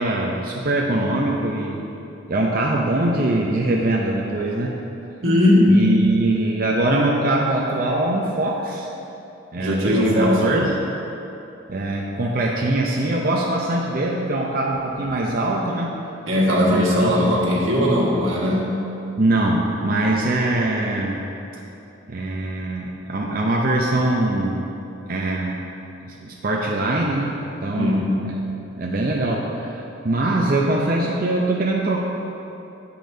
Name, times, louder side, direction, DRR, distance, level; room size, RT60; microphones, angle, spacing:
voice 1, 0.0-1.8 2.3-4.8 5.7-8.9 9.5-10.8 11.7-15.9 16.7-17.4 19.2-21.2 22.1-24.6 25.1-25.6 26.0-28.4 28.8-32.0, right 2 dB, 45° right, -2 dB, 0.6 m, -22 dB
voice 2, 5.2-5.8 9.5-10.6 16.3-18.7 27.7-28.2, left 1 dB, 90° right, -4 dB, 1.6 m, -18 dB
9.6 x 8.5 x 2.7 m, 3.0 s
head